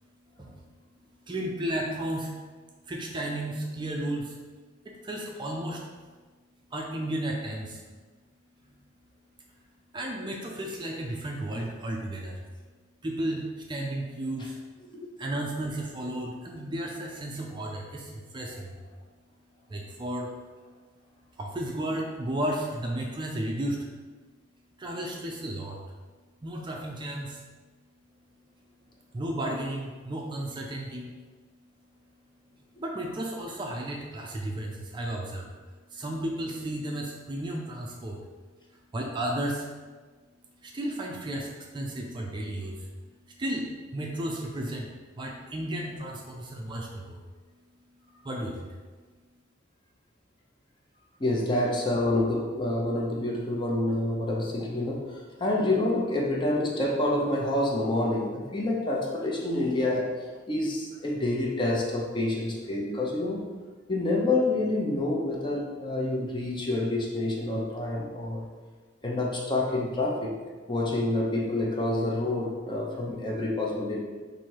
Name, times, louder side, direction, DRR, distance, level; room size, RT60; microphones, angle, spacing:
voice 1, 1.3-2.3 2.9-4.4 4.8-5.8 6.7-7.8 9.9-12.4 13.0-14.6 15.2-18.8 19.7-20.3 21.4-23.9 24.8-25.8 26.4-27.4 29.1-31.1 32.8-35.5 35.9-38.2 38.9-39.7 40.6-42.9 43.4-44.9 45.2-47.2 48.2-48.7, right 1 dB, 25° right, 0 dB, 0.4 m, -33 dB
voice 2, 51.2-60.1 60.5-63.5 63.9-68.5 69.0-70.4 70.7-74.0, left 2 dB, 25° left, -2 dB, 0.6 m, -28 dB
4.3 x 2.7 x 4.6 m, 1.4 s
head